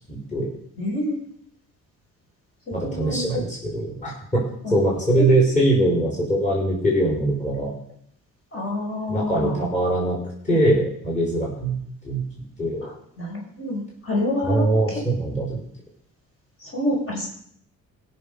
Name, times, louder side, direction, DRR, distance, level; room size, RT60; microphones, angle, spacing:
voice 1, 0.1-0.5 2.7-7.7 9.1-10.2 10.4-12.8 14.4-15.6, right 1 dB, 25° left, -4 dB, 5.1 m, -22 dB
voice 2, 0.8-1.2 2.7-3.3 4.6-4.8 5.1-5.3 8.5-9.6 12.8-15.0 16.6-17.3, left 1 dB, 45° left, -2 dB, 5.4 m, -28 dB
17.5 x 6.6 x 5.5 m, 0.67 s
cardioid pair, 90°, 30 cm